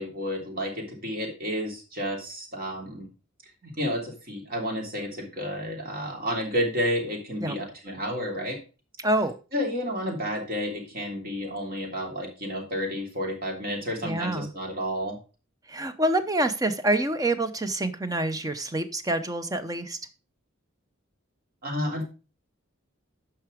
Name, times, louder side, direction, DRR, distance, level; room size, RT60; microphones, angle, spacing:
voice 1, 0.0-3.1 3.6-8.6 9.5-15.2 21.6-22.0, equal, 45° right, 0 dB, 3.2 m, -31 dB
voice 2, 9.0-9.3 14.0-14.5 15.7-20.0, right 1 dB, 15° right, 10 dB, 0.7 m, -26 dB
9.0 x 5.9 x 4.9 m, 0.33 s
head